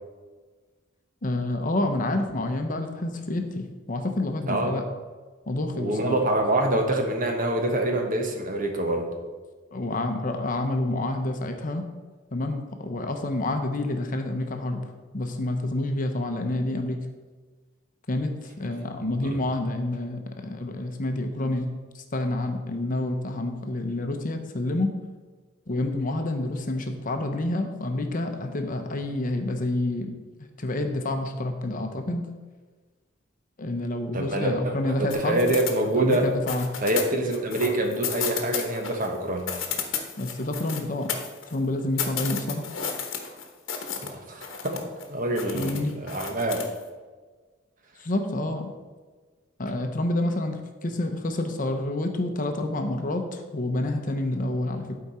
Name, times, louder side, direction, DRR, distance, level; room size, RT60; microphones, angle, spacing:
voice 1, 1.2-4.8 5.5-6.2 9.7-11.8 12.3-14.8 15.1-17.0 18.1-21.7 21.9-24.9 25.7-30.1 30.6-32.2 33.6-35.4 36.0-36.7 40.2-41.1 41.5-42.6 45.5-46.0 48.0-48.7 49.6-55.0, left 2 dB, 40° left, 5 dB, 0.8 m, -28 dB
voice 2, 4.5-4.8 5.7-9.1 19.2-19.4 34.1-34.7 35.0-36.3 36.8-39.5 44.0-44.8 45.1-46.6, right 1 dB, 40° right, 3 dB, 1.2 m, -26 dB
sound 1, 35.1-36.2 36.5-39.1 39.4-41.6 42.0-44.1 44.4-45.0 45.3-46.8, left 7 dB, 70° left, 1.1 m, -32 dB
11.5 x 4.8 x 4.3 m, 1.4 s
head